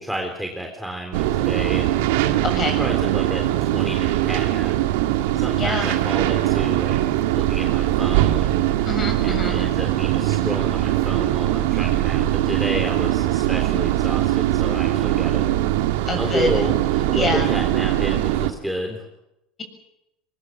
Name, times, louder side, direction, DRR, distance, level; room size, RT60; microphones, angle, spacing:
voice 1, 0.0-1.9 2.8-4.7 5.3-8.6 9.2-15.5 16.2-16.7 17.1-19.0, equal, ahead, 1 dB, 3.6 m, -30 dB
sound 1, 1.1-18.5, right 14 dB, 80° right, 1.9 m, -21 dB
voice 2, 2.4-2.8 5.6-5.9 8.8-9.6 16.1-16.6 17.1-17.5, left 2 dB, 30° left, 6 dB, 7.2 m, -26 dB
23.0 x 21.5 x 7.5 m, 0.86 s
supercardioid pair, 115°, 0 cm